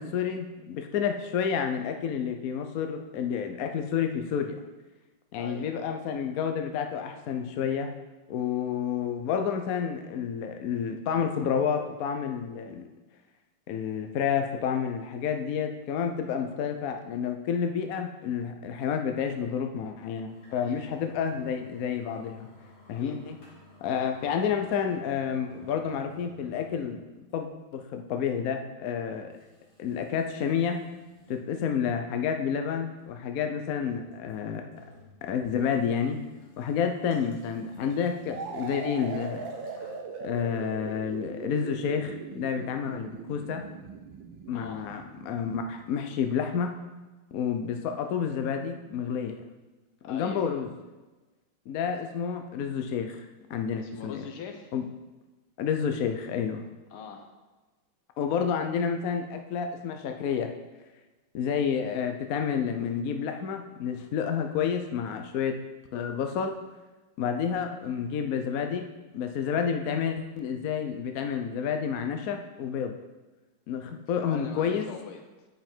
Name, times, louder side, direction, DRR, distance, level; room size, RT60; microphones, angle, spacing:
voice 1, 0.0-4.6 5.3-7.9 8.3-12.8 13.7-22.5 22.9-23.4 23.8-27.0 27.3-29.3 29.8-30.8 31.3-34.7 35.2-36.2 36.6-39.5 40.2-43.6 44.5-46.7 47.3-49.4 50.1-50.7 51.7-53.2 53.5-54.2 54.7-54.8 55.6-56.6 58.2-60.5 61.3-65.6 65.9-66.6 67.2-68.9 69.1-73.0 73.7-74.8, left 7 dB, 65° left, 5 dB, 0.9 m, -30 dB
voice 2, 5.4-5.7 20.6-20.8 23.0-23.2 44.5-44.8 50.0-50.5 53.8-54.7 56.9-57.3 74.1-75.5, left 6 dB, 85° left, 4 dB, 1.8 m, -42 dB
sound 1, 20.3-27.0 27.3-27.4 28.1-28.2 29.3-31.4 31.9-32.0 34.1-35.2 35.5-40.0, left 2 dB, 45° left, 2.4 m, -55 dB
sound 2, 38.3-46.0, right 5 dB, 70° right, 1.5 m, -40 dB
9.1 x 5.5 x 4.5 m, 1.2 s
omnidirectional pair, 2.3 m